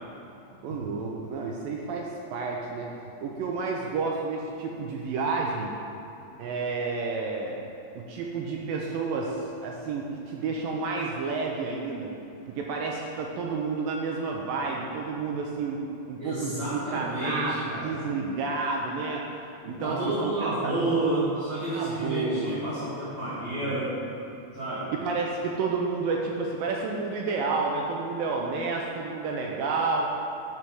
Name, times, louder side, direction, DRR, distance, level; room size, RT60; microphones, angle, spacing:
voice 1, 0.6-2.9 3.2-5.8 6.4-7.6 8.0-12.1 12.5-15.8 16.1-19.2 19.7-20.7 21.7-22.6 23.6-23.9 24.9-30.1, right 4 dB, 80° right, 0 dB, 2.1 m, -30 dB
voice 2, 16.2-17.9 19.8-23.9 24.5-24.9, right 2 dB, 50° right, -13 dB, 3.0 m, -30 dB
12.0 x 5.6 x 4.8 m, 2.8 s
omnidirectional pair, 4.7 m